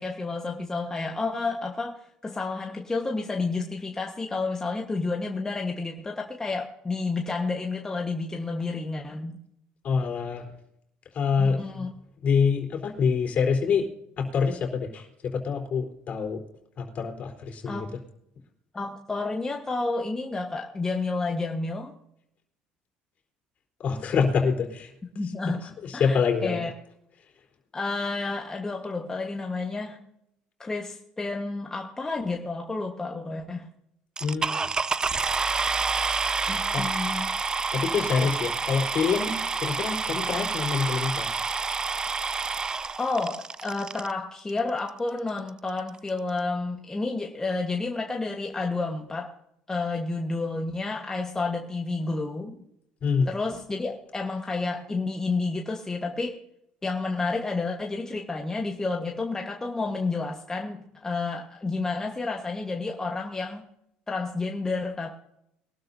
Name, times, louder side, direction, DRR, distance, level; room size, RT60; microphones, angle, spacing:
voice 1, 0.0-9.4 11.4-11.9 17.6-17.9 18.7-21.9 25.1-26.7 27.7-30.0 30.6-33.7 36.5-37.3 43.0-49.3 49.7-52.5 53.3-56.4 56.8-63.6 64.1-65.1, left 3 dB, 15° left, 1 dB, 1.4 m, -30 dB
voice 2, 9.8-10.4 11.1-11.9 12.2-13.9 14.2-16.4 16.8-17.9 23.8-24.9 25.9-26.6 34.2-34.7 36.7-36.8 37.7-41.3 53.0-53.3, left 5 dB, 50° left, 2 dB, 3.8 m, -26 dB
sound 1, 34.2-44.1 44.9-45.0 45.5-45.6 45.8-46.1, right 4 dB, 25° right, 0.4 m, -28 dB
22.0 x 12.5 x 2.7 m, 0.76 s
supercardioid pair, 95°, 3 cm